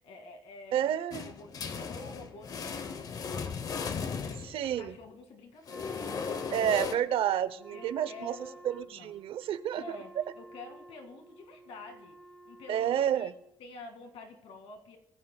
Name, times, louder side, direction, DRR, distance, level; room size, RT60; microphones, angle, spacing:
voice 1, 0.0-3.6 4.0-6.7 7.7-9.1 9.7-12.2 12.4-13.3 13.6-15.0, left 3 dB, 75° left, 4 dB, 2.1 m, -49 dB
voice 2, 0.7-1.3 4.5-5.0 6.5-8.3 8.7-9.8 12.7-13.3, right 10 dB, 65° right, 15 dB, 0.7 m, -29 dB
sound 1, 1.1-4.9 5.7-6.9, left 5 dB, 40° left, 0.7 m, -36 dB
Wind instrument woodwind instrument, 5.7-13.6, right 1 dB, 5° left, 1.4 m, -52 dB
22.0 x 14.5 x 2.2 m, 0.76 s
cardioid pair, 170°, 10 cm